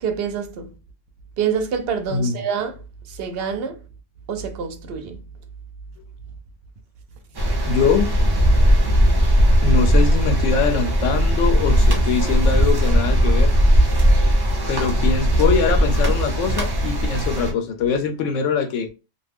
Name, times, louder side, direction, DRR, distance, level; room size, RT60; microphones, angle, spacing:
voice 1, 0.0-0.7 1.4-2.7 3.1-3.8 4.3-5.2, right 7 dB, 65° right, 0.7 m, -26 dB
sound 1, 7.3-17.5, equal, 30° right, 0.4 m, -18 dB
voice 2, 7.7-8.2 9.6-13.5 14.7-18.9, left 5 dB, 85° left, 0.9 m, -22 dB
2.6 x 2.2 x 3.3 m
omnidirectional pair, 1.2 m